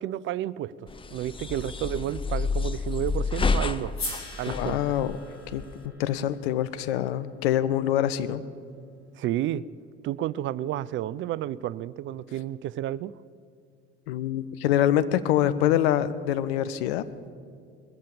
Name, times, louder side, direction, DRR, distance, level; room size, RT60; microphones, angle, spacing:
voice 1, 0.0-3.9 4.4-5.0 9.2-9.6 10.0-13.1, right 12 dB, 40° right, 18 dB, 0.4 m, -31 dB
sound 1, 0.9-5.9, left 4 dB, 15° left, 0.6 m, -30 dB
sound 2, 3.9-8.2, left 2 dB, 40° left, 3.4 m, -42 dB
voice 2, 4.5-5.2 5.5-5.6 6.0-8.4 14.1-17.0, left 11 dB, 70° left, 13 dB, 0.7 m, -25 dB
21.0 x 7.5 x 7.1 m, 2.3 s
figure-of-eight pair, 60°, 32 cm